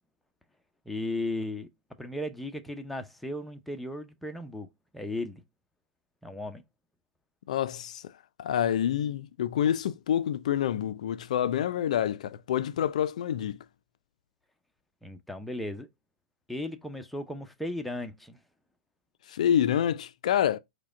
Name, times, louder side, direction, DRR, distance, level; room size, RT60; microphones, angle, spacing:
voice 1, 0.9-1.7 2.0-4.7 4.9-5.4 6.2-6.6 15.0-15.9 16.5-18.4, left 1 dB, ahead, 0.6 m, -35 dB
voice 2, 7.5-8.0 8.4-13.6 19.3-20.6, left 10 dB, 60° left, 0.4 m, -27 dB
4.8 x 2.2 x 3.6 m
hypercardioid pair, 115°, 4 cm